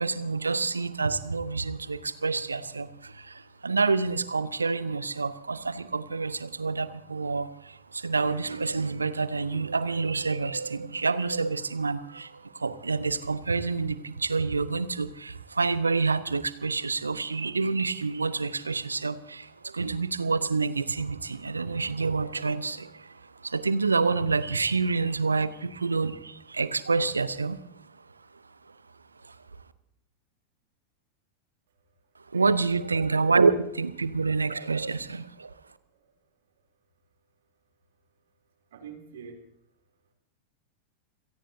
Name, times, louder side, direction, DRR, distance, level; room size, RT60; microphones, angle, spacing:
voice 1, 0.0-27.6 29.2-29.4 32.3-35.5, right 4 dB, 75° right, 16 dB, 0.8 m, -28 dB
voice 2, 35.5-36.1 38.7-39.4, right 6 dB, 60° right, 4 dB, 3.2 m, -47 dB
28.0 x 17.5 x 2.8 m, 0.73 s
figure-of-eight pair, 90°, 0 cm